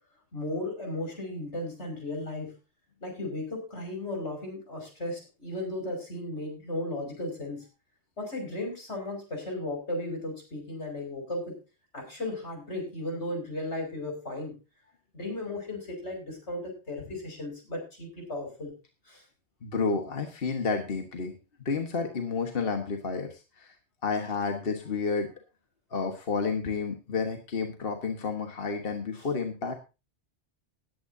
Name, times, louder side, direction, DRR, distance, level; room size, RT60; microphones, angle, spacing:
voice 1, 0.3-2.5 3.0-7.7 8.2-11.6 11.9-14.5 15.1-18.7 19.1-19.2, left 1 dB, 90° left, 2 dB, 6.0 m, -35 dB
voice 2, 19.6-21.3 21.6-23.7 24.0-25.3 25.9-29.7, left 4 dB, 55° left, 4 dB, 1.6 m, -30 dB
19.5 x 9.6 x 2.7 m, 0.29 s
omnidirectional pair, 1.1 m